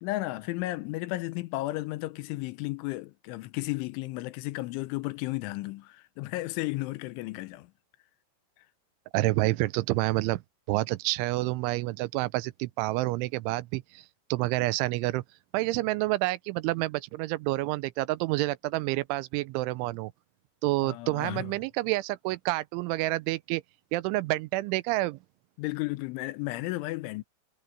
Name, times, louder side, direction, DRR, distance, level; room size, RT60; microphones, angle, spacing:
voice 1, 0.0-7.7 20.8-21.5 25.6-27.2, left 19 dB, 85° left, 3.2 m, -33 dB
voice 2, 9.1-10.4 10.7-14.1 14.3-15.2 15.5-20.1 20.6-23.6 23.9-25.2, right 19 dB, 90° right, 3.1 m, -28 dB
omnidirectional pair, 5.4 m